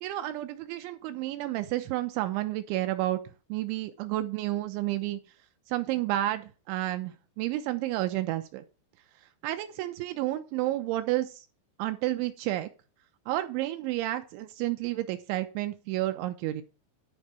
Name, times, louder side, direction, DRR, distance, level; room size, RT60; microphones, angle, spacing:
voice 1, 0.0-3.2 3.5-5.2 5.7-8.6 9.4-11.4 11.8-12.7 13.3-16.6, right 15 dB, 80° right, 8 dB, 2.9 m, -31 dB
10.5 x 4.5 x 7.4 m, 0.35 s
omnidirectional pair, 5.6 m